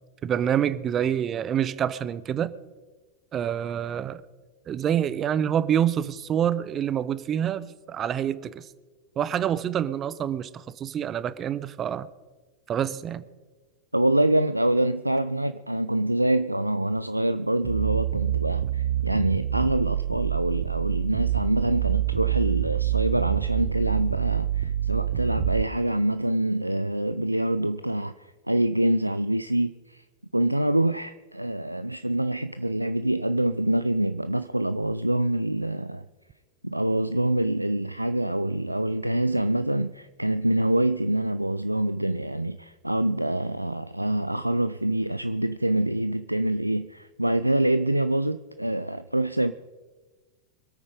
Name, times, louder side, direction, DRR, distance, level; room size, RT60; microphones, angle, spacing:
voice 1, 0.2-2.5 3.3-4.2 4.7-8.6 9.2-12.1 12.7-13.2, right 9 dB, 25° right, 0.7 m, -27 dB
voice 2, 13.9-30.0 30.3-36.0 36.6-49.5, right 1 dB, 85° right, 0.4 m, -25 dB
sound 1, 17.6-25.6, right 12 dB, 60° right, 0.7 m, -26 dB
24.5 x 8.7 x 5.1 m
figure-of-eight pair, 90°, 0 cm